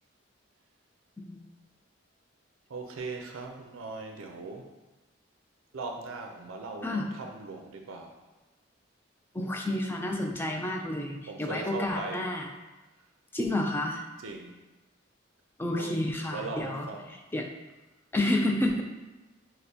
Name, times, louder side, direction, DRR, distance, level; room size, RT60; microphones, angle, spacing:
voice 1, 2.7-4.7 5.7-8.2 11.3-12.3 14.2-14.5 15.7-15.9 16.2-17.2, right 3 dB, 85° right, 3 dB, 0.5 m, -39 dB
voice 2, 9.3-12.5 13.3-14.0 15.6-16.9 17.3-17.5 18.1-18.8, left 1 dB, 10° left, 1 dB, 0.3 m, -30 dB
6.4 x 2.1 x 2.7 m, 1.1 s
head